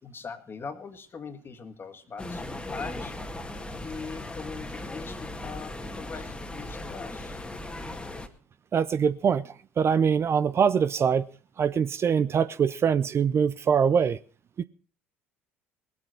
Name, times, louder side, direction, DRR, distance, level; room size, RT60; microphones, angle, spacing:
voice 1, 0.0-3.1 3.8-7.4, left 5 dB, 30° left, 1.9 m, -41 dB
sound 1, 2.2-8.3, left 2 dB, 15° left, 1.7 m, -38 dB
voice 2, 8.7-11.3 11.6-14.2 14.6-14.7, right 7 dB, 35° right, 0.6 m, -23 dB
19.0 x 8.3 x 5.7 m
hypercardioid pair, 65°, 7 cm